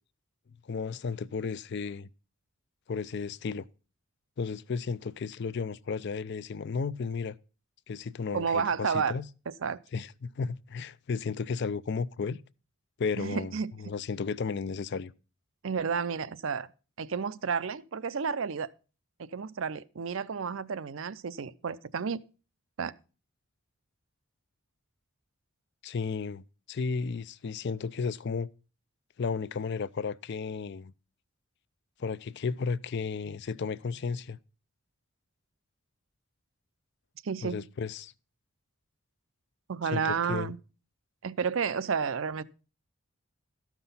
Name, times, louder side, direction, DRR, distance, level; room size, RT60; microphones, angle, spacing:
voice 1, 0.6-2.1 2.9-3.7 4.4-7.4 7.9-9.2 9.9-12.4 13.0-15.1 25.8-28.5 29.2-30.9 32.0-34.4 37.4-38.1 39.9-40.5, left 5 dB, 50° left, 0.4 m, -33 dB
voice 2, 8.3-9.2 9.5-9.8 13.2-13.7 15.6-16.7 17.0-18.7 19.3-22.2 22.8-22.9 37.2-37.6 39.7-40.6 41.2-42.4, right 6 dB, 60° right, 0.5 m, -31 dB
13.0 x 6.0 x 5.5 m
head